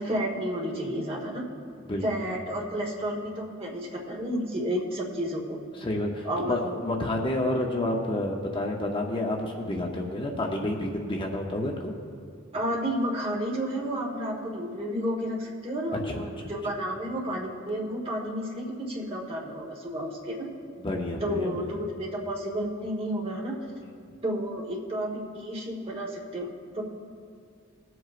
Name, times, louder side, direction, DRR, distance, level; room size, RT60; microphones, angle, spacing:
voice 1, 0.0-1.4 2.0-5.6 6.2-6.8 12.5-20.5 21.2-23.6 24.2-26.5 26.7-26.8, equal, 30° right, -1 dB, 1.4 m, -31 dB
voice 2, 5.8-11.9 16.1-16.3 20.8-21.5, left 1 dB, 25° left, 1 dB, 0.7 m, -29 dB
20.5 x 7.8 x 2.5 m, 2.3 s
head